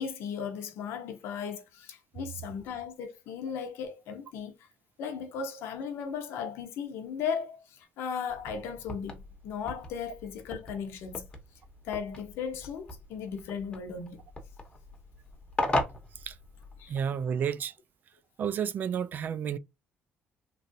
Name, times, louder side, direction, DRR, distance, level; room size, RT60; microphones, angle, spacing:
voice 1, 0.0-4.7 5.0-11.3 11.8-14.2 16.8-16.9, left 6 dB, 80° left, 0.8 m, -36 dB
sound 1, 8.3-17.0, left 1 dB, 20° left, 0.9 m, -38 dB
voice 2, 16.9-17.7 18.4-19.6, right 8 dB, 45° right, 0.3 m, -31 dB
3.1 x 2.4 x 2.6 m
cardioid pair, 120°, 4 cm